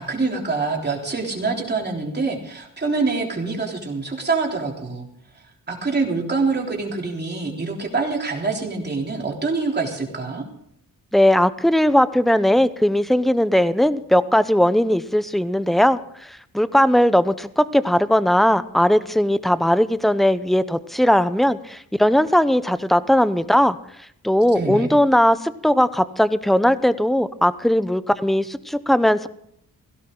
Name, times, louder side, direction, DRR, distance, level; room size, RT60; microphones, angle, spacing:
voice 1, 0.0-5.1 5.7-10.4 24.6-24.9, right 4 dB, 30° right, 0 dB, 3.6 m, -25 dB
voice 2, 11.1-23.8 24.2-29.3, equal, ahead, 14 dB, 0.7 m, -18 dB
17.5 x 16.0 x 3.9 m, 0.71 s
wide cardioid pair, 115°, 34 cm